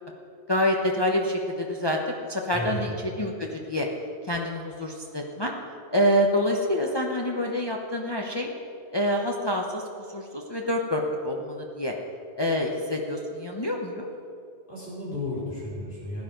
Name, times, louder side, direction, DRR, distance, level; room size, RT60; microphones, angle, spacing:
voice 1, 0.5-2.0 2.3-2.9 3.2-3.9 4.3-5.5 5.9-8.5 8.9-9.8 10.1-11.9 12.4-14.1, equal, 25° left, 1 dB, 0.8 m, -26 dB
voice 2, 2.5-2.9 14.7-16.2, left 1 dB, 50° left, -7 dB, 4.4 m, -33 dB
16.0 x 9.5 x 5.1 m, 2.5 s
omnidirectional pair, 1.1 m